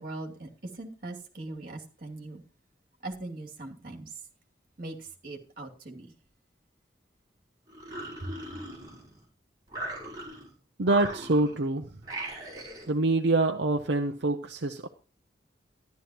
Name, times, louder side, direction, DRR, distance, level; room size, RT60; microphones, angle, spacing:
voice 1, 0.0-2.4 3.0-4.1 4.8-6.1 8.2-8.3, right 2 dB, 50° right, 2.6 m, -40 dB
sound 1, 7.7-9.2 9.7-10.5 10.8-11.6 12.0-12.9, right 1 dB, 20° right, 5.2 m, -39 dB
voice 2, 10.8-12.0 12.9-14.9, right 2 dB, 75° right, 0.8 m, -26 dB
13.5 x 11.5 x 3.0 m
head